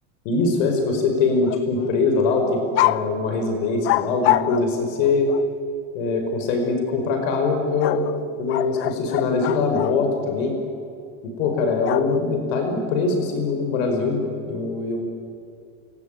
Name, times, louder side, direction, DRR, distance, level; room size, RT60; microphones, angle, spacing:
voice 1, 0.2-5.3 5.9-8.0 8.4-10.5 11.4-15.0, left 4 dB, 70° left, 4 dB, 5.3 m, -22 dB
sound 1, 1.3-1.9 2.2-2.4 2.7-3.1 3.8-5.5 7.8-10.0 11.8-12.5, left 16 dB, 35° left, 0.6 m, -25 dB
29.0 x 21.0 x 9.2 m, 2.5 s
cardioid pair, 170°, 39 cm